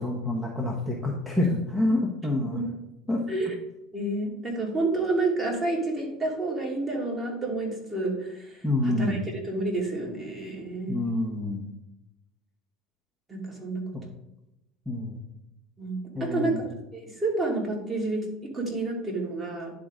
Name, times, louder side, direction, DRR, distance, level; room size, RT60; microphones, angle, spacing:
voice 1, 0.0-2.6 3.1-3.2 8.6-9.2 10.9-11.7 14.9-15.2 16.1-16.6, left 2 dB, 5° right, -3 dB, 1.2 m, -27 dB
voice 2, 3.9-11.1 13.3-13.9 15.8-19.7, right 2 dB, 20° right, -1 dB, 2.5 m, -29 dB
10.5 x 3.9 x 3.7 m, 0.90 s
hypercardioid pair, 95°, 0 cm